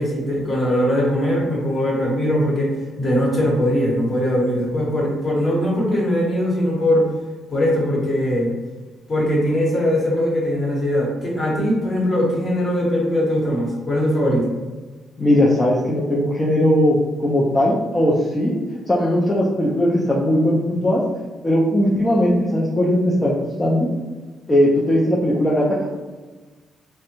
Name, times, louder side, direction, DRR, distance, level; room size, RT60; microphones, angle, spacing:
voice 1, 0.0-7.1 7.5-8.5 9.1-14.5, equal, 40° left, -4 dB, 1.0 m, -20 dB
voice 2, 15.2-18.6 18.9-21.0 21.4-23.9 24.5-25.9, left 1 dB, 20° left, -5 dB, 0.4 m, -18 dB
2.4 x 2.1 x 2.9 m, 1.3 s
cardioid pair, 75°, 0 cm